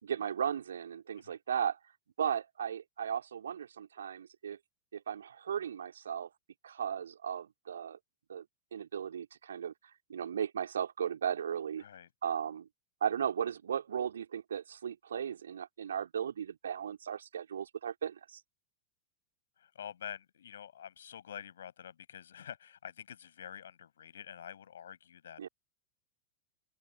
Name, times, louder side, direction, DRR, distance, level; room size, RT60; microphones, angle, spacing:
voice 1, 0.0-1.8 2.2-4.6 4.9-6.3 6.6-8.0 8.3-8.4 8.7-9.7 10.1-11.8 12.2-12.7 13.0-18.4 25.4-25.5, right 8 dB, 65° right, 4.2 m, -36 dB
voice 2, 19.6-25.5, left 9 dB, 65° left, 7.6 m, -47 dB
open air
figure-of-eight pair, 90°, 0 cm